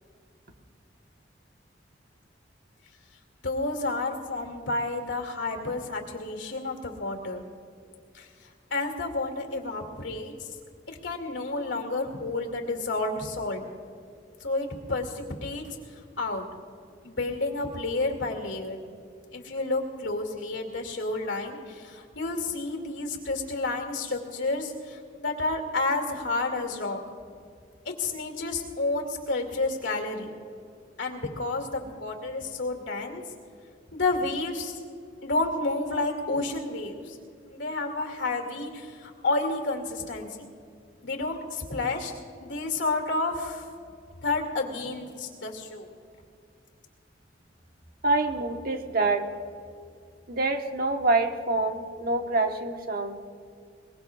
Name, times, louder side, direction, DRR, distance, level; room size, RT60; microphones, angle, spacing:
voice 1, 3.4-7.4 8.1-8.3 8.7-10.5 10.9-13.6 14.4-15.8 16.2-16.4 17.0-18.8 19.3-27.0 27.9-30.3 31.0-33.2 33.9-34.8 35.2-37.2 37.5-40.5 41.0-42.1 42.4-43.7 44.2-45.9, left 2 dB, 90° left, 3 dB, 2.4 m, -30 dB
voice 2, 48.0-49.3 50.3-53.2, right 2 dB, 50° right, 4 dB, 1.2 m, -26 dB
22.5 x 21.5 x 2.4 m, 2.3 s
head